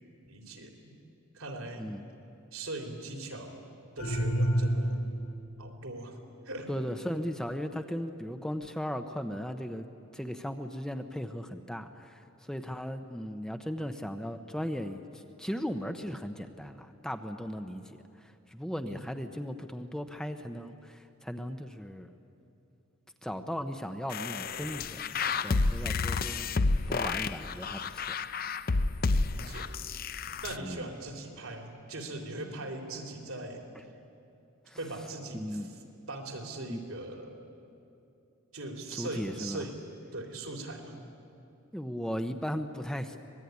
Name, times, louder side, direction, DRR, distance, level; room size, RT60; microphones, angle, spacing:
voice 1, 0.2-0.7 1.3-1.9 2.5-3.6 4.0-5.0 5.6-6.2 6.5-6.7 18.9-19.1 29.3-29.8 30.4-33.7 34.7-35.7 36.1-37.4 38.5-41.0, right 2 dB, 80° right, 2 dB, 3.6 m, -40 dB
sound 1, 4.0-5.4, equal, 75° left, 7.5 m, -28 dB
voice 2, 6.7-9.9 10.1-22.1 23.2-25.0 25.4-26.5 26.9-28.0 30.6-30.8 34.7-34.8 35.3-35.7 36.7-36.8 38.9-39.7 41.7-43.2, equal, 5° left, 7 dB, 0.8 m, -37 dB
sound 2, 24.1-30.6, left 3 dB, 45° left, 0.6 m, -30 dB
24.5 x 20.5 x 9.6 m, 2.7 s
head